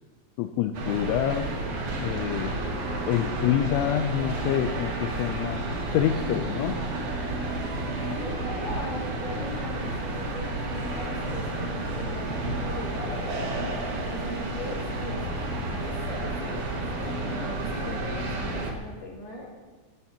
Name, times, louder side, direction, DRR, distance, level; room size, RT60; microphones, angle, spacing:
voice 1, 0.4-1.5 2.0-2.5 3.1-6.8, left 11 dB, 80° left, 5 dB, 2.9 m, -27 dB
sound 1, 0.7-18.7, right 2 dB, 55° right, 2.4 m, -31 dB
voice 2, 8.0-13.5 14.0-15.2 15.6-19.5, left 1 dB, 40° left, -4 dB, 6.5 m, -39 dB
19.0 x 19.0 x 2.9 m, 1.3 s
omnidirectional pair, 6.0 m